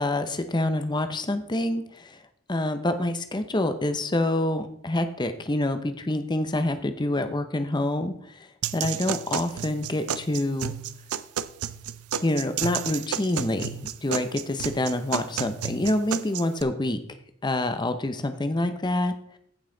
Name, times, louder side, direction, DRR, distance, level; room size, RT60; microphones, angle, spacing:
voice 1, 0.0-2.2 2.5-8.5 8.7-10.7 12.2-17.0 17.4-19.4, left 1 dB, 20° left, 9 dB, 0.7 m, -27 dB
sound 1, 8.6-16.6, right 9 dB, 85° right, 0.5 m, -32 dB
15.0 x 5.5 x 3.9 m, 0.67 s
head